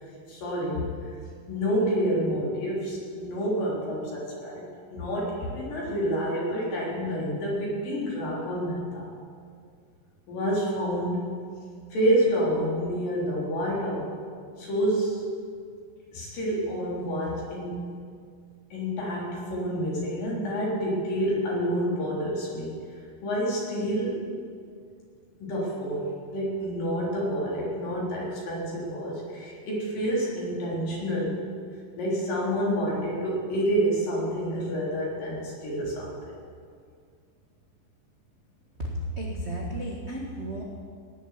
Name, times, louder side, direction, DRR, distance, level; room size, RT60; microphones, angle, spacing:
voice 1, 0.3-0.9 1.5-9.1 10.3-11.3 11.9-14.1 14.6-15.2 16.1-17.9 18.7-22.8 23.2-24.3 25.4-26.0 26.3-31.4 32.0-36.1, equal, 70° left, -5 dB, 5.2 m, -28 dB
voice 2, 38.8-40.6, right 1 dB, 50° right, -3 dB, 0.7 m, -33 dB
18.0 x 7.4 x 8.0 m, 2.2 s
omnidirectional pair, 4.1 m